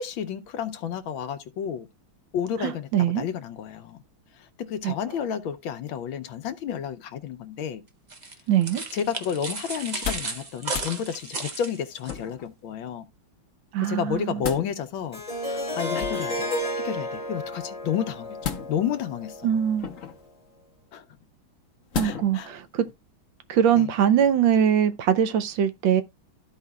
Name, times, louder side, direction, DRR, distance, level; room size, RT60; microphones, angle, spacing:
voice 1, 0.0-1.9 2.3-4.0 4.3-7.8 8.9-13.0 13.8-16.5 16.8-18.4 18.7-19.6 20.9-21.0 22.0-22.5 23.7-23.9, left 8 dB, 75° left, 1.5 m, -31 dB
voice 2, 2.6-3.2 4.8-4.9 8.5-8.8 13.7-14.4 19.4-19.9 21.9-22.9 23.5-26.0, right 9 dB, 75° right, 1.4 m, -22 dB
sound 1, 8.1-12.2, right 3 dB, 45° right, 0.5 m, -34 dB
sound 2, 9.8-10.4 10.7-10.9 12.0-12.5 14.0-14.7 15.9-16.4 18.4-19.0 19.8-20.3 21.9-22.4 22.9-23.0, left 8 dB, 50° left, 1.1 m, -33 dB
Harp, 15.1-20.1, left 1 dB, 15° left, 2.3 m, -32 dB
14.0 x 4.8 x 2.3 m
omnidirectional pair, 2.2 m